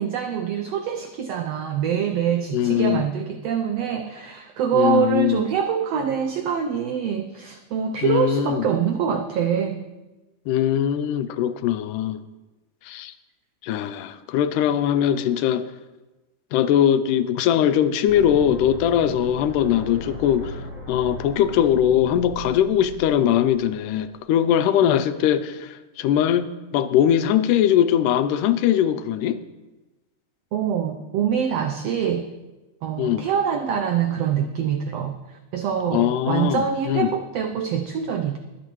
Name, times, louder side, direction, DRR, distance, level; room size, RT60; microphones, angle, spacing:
voice 1, 0.0-9.8 30.5-32.3 32.8-38.4, right 8 dB, 85° right, 5 dB, 1.4 m, -25 dB
voice 2, 2.5-3.1 4.7-5.4 8.0-8.7 10.5-12.2 12.9-13.1 13.6-15.7 16.5-29.4 33.0-33.3 35.9-37.2, left 10 dB, 85° left, 12 dB, 2.1 m, -21 dB
sound 1, 18.1-24.1, left 1 dB, 35° right, 1.2 m, -38 dB
23.0 x 8.2 x 3.1 m, 1.1 s
omnidirectional pair, 3.7 m